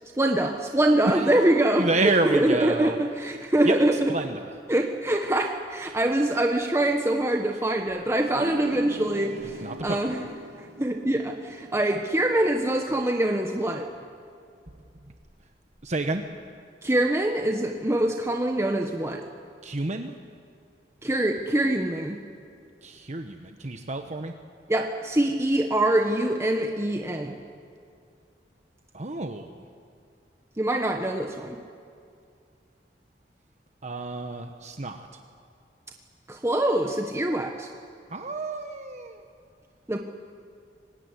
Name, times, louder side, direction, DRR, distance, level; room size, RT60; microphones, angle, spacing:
voice 1, 0.2-1.9 2.2-4.1 4.7-10.2 10.6-13.9 16.8-19.2 21.0-22.2 24.7-27.4 30.6-31.6 36.3-37.7 39.9-40.0, right 1 dB, 15° right, 3 dB, 1.3 m, -24 dB
voice 2, 1.1-3.0 3.6-4.6 9.6-10.3 15.8-16.2 19.6-20.2 22.8-24.3 28.9-29.7 33.8-35.1 38.1-39.2, right 2 dB, 40° right, 6 dB, 1.1 m, -30 dB
sound 1, 8.2-13.5, equal, 85° right, 2.9 m, -42 dB
24.5 x 20.5 x 9.8 m, 2.4 s
head